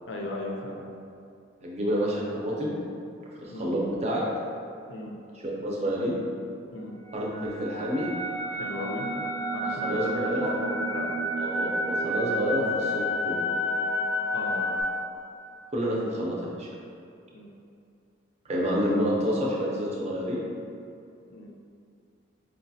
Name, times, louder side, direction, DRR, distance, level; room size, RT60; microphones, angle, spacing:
voice 1, 0.1-0.8 3.5-3.7 4.9-5.1 6.7-7.0 8.5-9.1 9.5-11.1 14.3-14.7 17.3-17.5 21.3-21.5, left 2 dB, 70° left, 0 dB, 0.5 m, -36 dB
voice 2, 1.6-2.7 3.4-4.2 5.4-6.2 7.1-8.1 9.8-10.5 11.4-13.4 15.7-16.7 18.4-20.4, equal, 35° right, -4 dB, 0.6 m, -28 dB
sound 1, 7.1-14.8, left 1 dB, 15° left, 0.6 m, -30 dB
5.0 x 2.3 x 2.7 m, 2.5 s
head